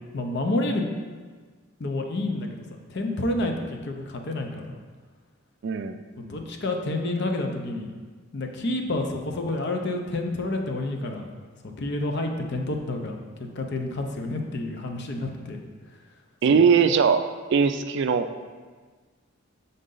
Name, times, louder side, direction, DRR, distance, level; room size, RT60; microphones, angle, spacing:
voice 1, 0.1-0.8 1.8-2.6 2.9-4.8 6.2-7.9 8.3-11.3 11.6-13.1 13.6-15.6 16.5-16.6, left 2 dB, 55° left, 3 dB, 0.6 m, -29 dB
voice 2, 5.6-6.0 16.4-17.2 17.5-18.3, right 6 dB, 60° right, 9 dB, 0.3 m, -20 dB
6.5 x 3.9 x 3.8 m, 1.5 s
head